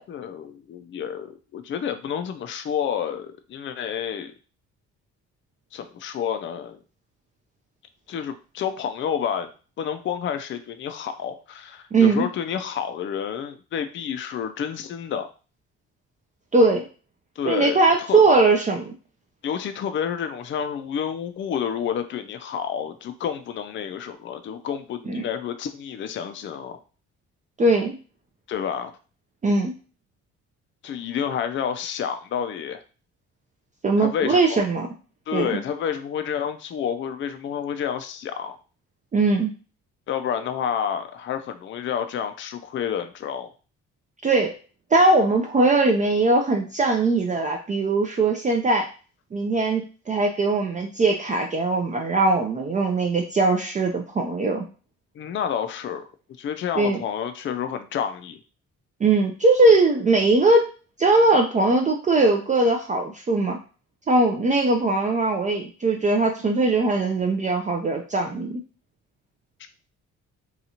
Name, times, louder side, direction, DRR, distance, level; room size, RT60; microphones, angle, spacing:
voice 1, 0.1-4.3 5.7-6.8 8.1-9.5 9.8-15.3 17.4-18.2 19.4-26.8 28.5-28.9 30.8-32.8 34.0-34.6 35.3-38.6 40.1-43.5 55.2-56.0 56.4-58.4, left 8 dB, 40° left, 9 dB, 0.4 m, -29 dB
voice 2, 11.9-12.3 16.5-16.9 17.5-18.9 25.1-25.3 27.6-28.0 29.4-29.7 33.8-34.9 35.3-35.6 39.1-39.5 44.2-44.5 44.9-48.9 49.3-54.6 56.8-57.0 59.0-60.7 61.0-63.6 64.1-68.6, right 2 dB, 25° right, 2 dB, 0.4 m, -20 dB
2.8 x 2.4 x 2.7 m, 0.36 s
cardioid pair, 90°, 30 cm